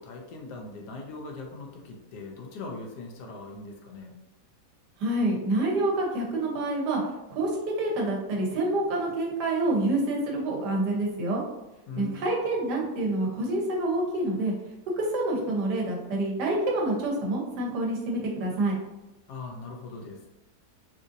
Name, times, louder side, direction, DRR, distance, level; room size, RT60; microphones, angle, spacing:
voice 1, 0.0-4.1 11.9-12.3 19.3-20.3, left 3 dB, 80° left, 2 dB, 1.2 m, -40 dB
voice 2, 5.0-7.0 7.3-11.4 12.0-14.5 15.0-18.8, right 2 dB, 90° right, -1 dB, 1.5 m, -27 dB
4.0 x 2.6 x 2.5 m, 0.97 s
omnidirectional pair, 1.7 m